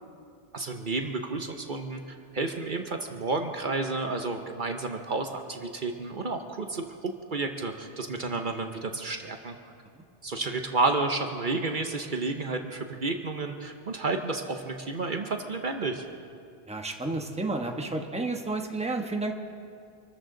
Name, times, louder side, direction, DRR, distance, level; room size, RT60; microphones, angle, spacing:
voice 1, 0.5-9.6 10.2-16.0, right 3 dB, 55° right, 5 dB, 1.0 m, -31 dB
voice 2, 16.7-19.3, right 2 dB, 5° right, 3 dB, 1.1 m, -31 dB
26.5 x 14.0 x 3.9 m, 2.3 s
omnidirectional pair, 1.1 m